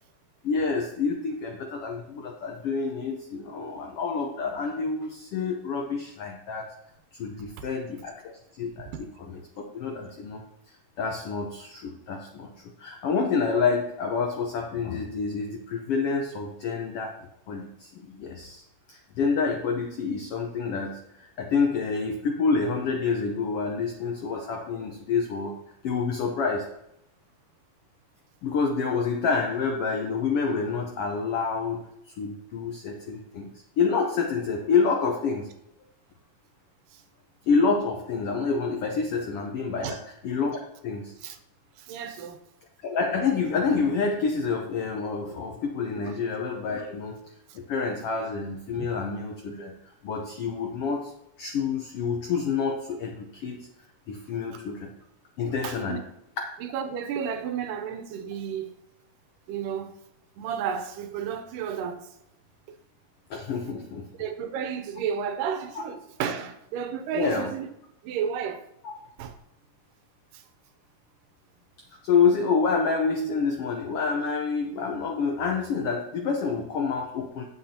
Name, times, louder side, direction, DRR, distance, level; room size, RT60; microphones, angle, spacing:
voice 1, 0.4-6.7 7.2-9.4 9.7-10.4 11.0-12.5 12.8-17.1 17.5-18.6 18.9-25.5 25.8-26.6 28.4-33.5 33.8-35.5 37.5-40.0 40.2-41.1 42.8-47.2 47.5-51.1 51.4-53.7 54.1-54.9 55.4-56.0 63.3-64.0 65.7-65.8 67.1-67.5 68.8-68.9 72.0-77.4, left 5 dB, 80° left, 1.3 m, -28 dB
voice 2, 41.8-42.4 46.0-46.2 47.5-47.6 48.7-48.9 55.6-56.0 56.6-58.7 59.5-60.0 60.4-62.1 64.2-67.7 68.0-68.7 69.2-69.3 70.3-70.4, right 7 dB, 90° right, 2.4 m, -32 dB
9.4 x 7.7 x 2.8 m
omnidirectional pair, 3.7 m